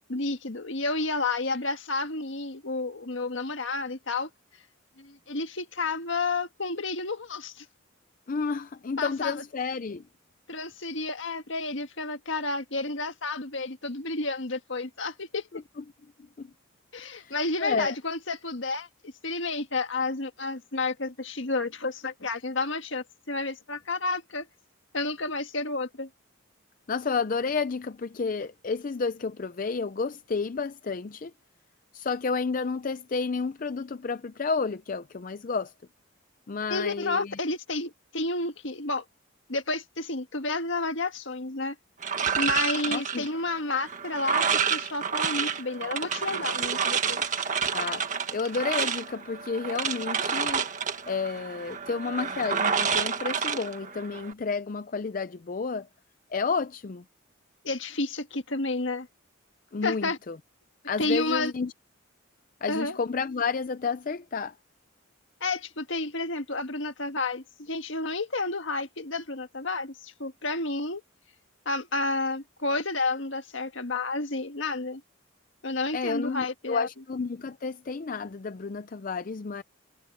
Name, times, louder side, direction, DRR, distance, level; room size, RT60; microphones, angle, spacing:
voice 1, 0.1-4.3 5.0-7.6 9.0-9.3 10.5-15.5 16.9-24.5 24.9-26.1 36.7-39.0 39.5-41.7 42.3-44.4 44.7-47.2 57.6-59.1 59.8-60.2 61.0-61.5 62.7-63.0 65.4-71.0 71.6-75.0 75.6-76.9, left 3 dB, 65° left, 1.7 m, -31 dB
voice 2, 8.3-10.0 16.2-16.5 17.0-17.9 26.9-31.3 31.9-35.7 36.5-37.4 42.9-43.3 47.7-48.1 48.3-55.9 56.3-57.0 59.7-60.4 60.8-61.7 62.6-64.6 75.9-79.6, left 4 dB, 40° left, 0.4 m, -31 dB
sound 1, 42.0-54.3, right 6 dB, 40° right, 1.7 m, -29 dB
head